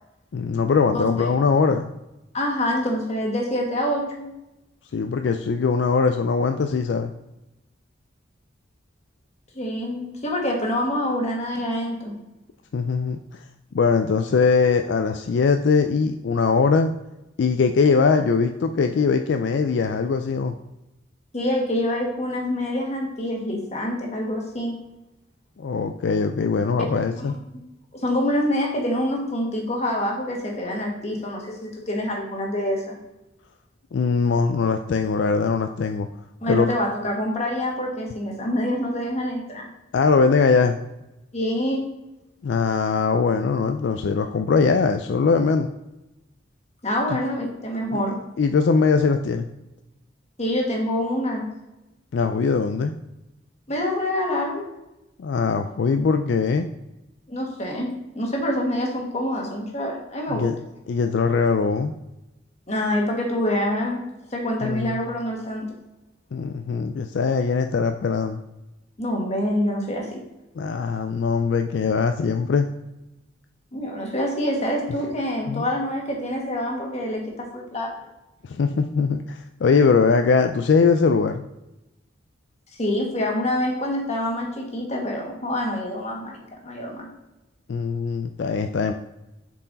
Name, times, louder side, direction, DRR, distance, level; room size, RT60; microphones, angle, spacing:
voice 1, 0.3-2.0 4.9-7.1 12.7-13.4 13.7-16.9 17.4-20.5 25.6-27.4 33.9-36.1 36.5-36.7 39.9-40.8 42.4-45.7 47.9-48.0 48.4-49.5 52.1-53.0 55.2-56.7 60.3-60.5 60.9-61.9 64.6-65.0 66.3-68.4 70.6-72.7 75.5-75.6 78.4-81.5 87.7-88.9, left 5 dB, 70° left, 6 dB, 0.4 m, -21 dB
voice 2, 2.3-4.3 9.5-12.1 21.3-24.8 27.2-27.3 27.5-27.6 27.9-33.0 36.4-39.7 41.3-41.8 46.8-48.1 50.4-51.5 53.7-54.7 57.3-60.5 62.7-64.0 64.3-65.7 69.0-70.2 73.7-77.9 82.8-87.1, left 1 dB, 35° left, -1 dB, 1.6 m, -26 dB
7.2 x 4.6 x 4.0 m, 0.95 s
head